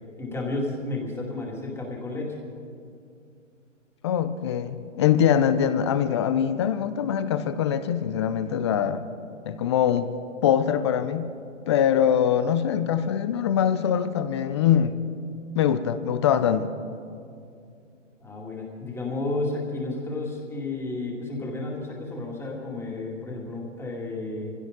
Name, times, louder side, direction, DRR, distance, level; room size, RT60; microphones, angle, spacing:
voice 1, 0.2-2.4 18.2-24.5, left 2 dB, 5° left, -2 dB, 2.3 m, -32 dB
voice 2, 4.0-9.0 9.5-10.1 10.4-11.3 11.7-14.9 15.5-16.7, left 9 dB, 25° left, 12 dB, 0.5 m, -23 dB
23.5 x 16.0 x 3.7 m, 2.4 s
hypercardioid pair, 135°, 38 cm